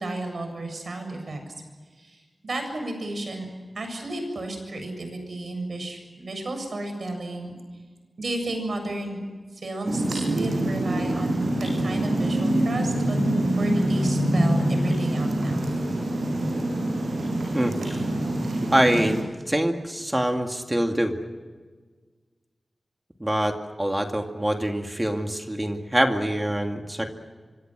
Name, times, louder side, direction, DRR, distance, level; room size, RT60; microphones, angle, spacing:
voice 1, 0.0-1.4 2.0-2.2 2.4-3.5 3.8-7.5 8.2-9.2 9.6-13.2 13.6-15.7, right 2 dB, 65° right, 5 dB, 7.4 m, -32 dB
sound 1, 9.9-19.2, right 1 dB, 90° right, 7.4 m, -25 dB
voice 2, 18.7-19.2 19.5-21.2 23.2-27.1, right 1 dB, 15° right, 4 dB, 2.3 m, -24 dB
26.0 x 25.0 x 6.2 m, 1.5 s
wide cardioid pair, 110°, 0 cm